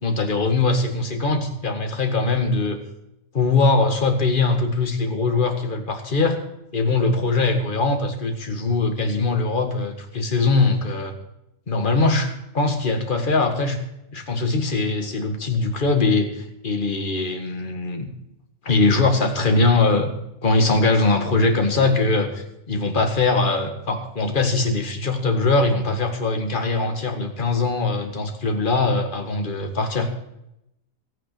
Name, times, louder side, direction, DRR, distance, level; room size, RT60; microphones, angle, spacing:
voice 1, 0.0-2.8 3.3-6.4 6.7-11.1 11.7-13.8 14.1-18.1 18.6-20.1 20.4-30.1, left 3 dB, 35° left, 4 dB, 2.0 m, -21 dB
15.0 x 9.0 x 6.9 m, 0.83 s
omnidirectional pair, 1.4 m